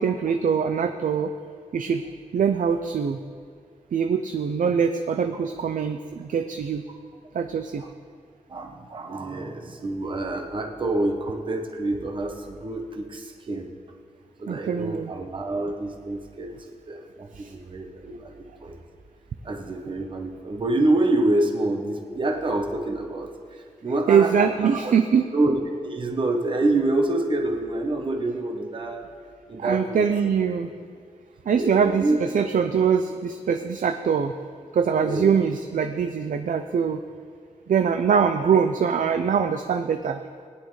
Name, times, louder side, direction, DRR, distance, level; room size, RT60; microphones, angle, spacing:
voice 1, 0.0-1.3 1.7-2.0 2.3-3.2 3.9-6.8 7.3-7.8 14.5-15.1 17.3-17.5 24.1-25.3 29.6-30.7 31.5-34.3 34.7-37.0 37.7-40.2, right 6 dB, 75° right, 7 dB, 0.5 m, -23 dB
voice 2, 8.5-13.7 14.4-16.5 16.9-18.8 19.4-24.9 25.3-25.6 25.8-29.1 29.5-30.0 31.5-32.2 35.0-35.3, right 2 dB, 35° right, 2 dB, 0.9 m, -27 dB
19.5 x 10.5 x 3.2 m, 2.1 s
wide cardioid pair, 180°, 14 cm